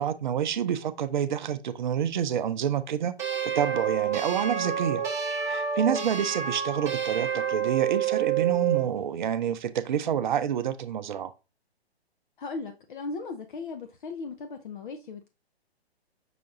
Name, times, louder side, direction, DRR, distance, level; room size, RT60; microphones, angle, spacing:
voice 1, 0.0-3.1 3.4-5.1 5.4-11.3, right 8 dB, 45° right, 0.5 m, -28 dB
sound 1, 3.2-8.9, right 8 dB, 10° right, 1.0 m, -28 dB
voice 2, 12.4-15.3, left 4 dB, 50° left, 0.7 m, -37 dB
5.8 x 2.4 x 3.9 m
hypercardioid pair, 140°, 32 cm